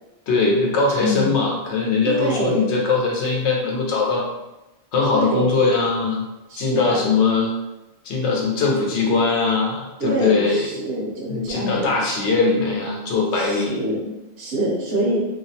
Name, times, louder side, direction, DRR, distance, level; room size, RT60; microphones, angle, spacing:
voice 1, 0.3-4.3 4.9-6.3 6.6-7.5 8.0-10.7 11.3-13.8, left 4 dB, 70° left, -1 dB, 0.9 m, -21 dB
voice 2, 1.0-1.4 2.0-2.7 5.0-5.6 6.5-7.0 10.0-11.9 13.3-15.2, right 1 dB, 65° right, -4 dB, 0.7 m, -25 dB
2.4 x 2.1 x 2.6 m, 0.97 s
omnidirectional pair, 1.2 m